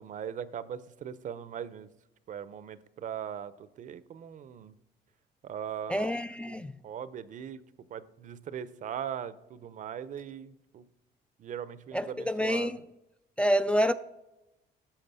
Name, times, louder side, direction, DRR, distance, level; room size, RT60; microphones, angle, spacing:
voice 1, 0.0-1.9 2.3-4.8 5.4-6.5 6.8-7.6 7.9-10.8 11.4-12.8, right 8 dB, 50° right, 0.6 m, -40 dB
voice 2, 5.9-6.7 11.9-12.8 13.4-13.9, equal, 5° left, 0.3 m, -27 dB
11.5 x 6.5 x 5.5 m
cardioid pair, 110°, 17 cm